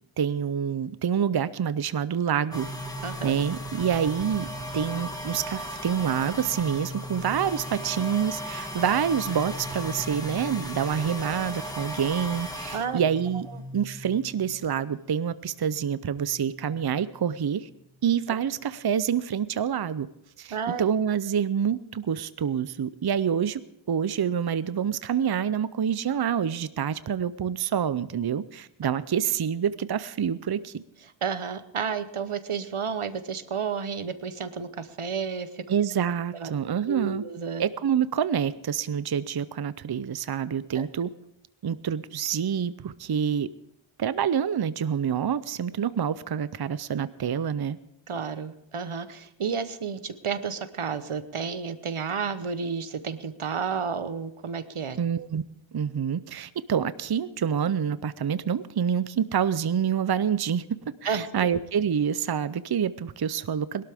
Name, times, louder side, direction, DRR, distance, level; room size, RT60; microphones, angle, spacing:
voice 1, 0.2-2.7 3.2-4.5 4.7-13.5 13.7-17.7 18.0-20.1 20.4-23.6 23.9-30.8 35.7-37.2 37.6-41.1 41.6-43.5 44.0-47.8 55.0-55.4 55.7-63.8, right 8 dB, 50° right, 16 dB, 0.6 m, -27 dB
sound 1, 2.5-15.2 15.5-18.0, equal, 10° left, 2.6 m, -37 dB
voice 2, 3.0-3.3 12.7-13.1 13.5-13.6 20.5-20.8 31.2-35.6 36.3-36.5 36.9-37.6 40.7-40.9 48.1-55.0 61.0-61.5, right 6 dB, 85° right, 12 dB, 1.0 m, -31 dB
21.5 x 12.5 x 3.5 m, 0.80 s
wide cardioid pair, 40°, 49 cm